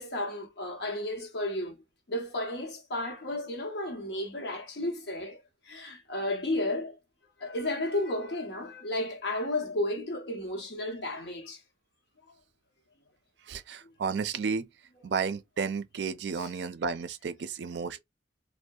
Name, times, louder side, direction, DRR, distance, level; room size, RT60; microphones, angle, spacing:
voice 1, 0.0-1.8 2.1-6.9 7.4-11.6 16.4-16.5, left 1 dB, 60° left, 0.8 m, -33 dB
voice 2, 13.5-14.7 15.0-18.0, right 5 dB, 70° right, 0.4 m, -32 dB
2.6 x 2.1 x 2.2 m
head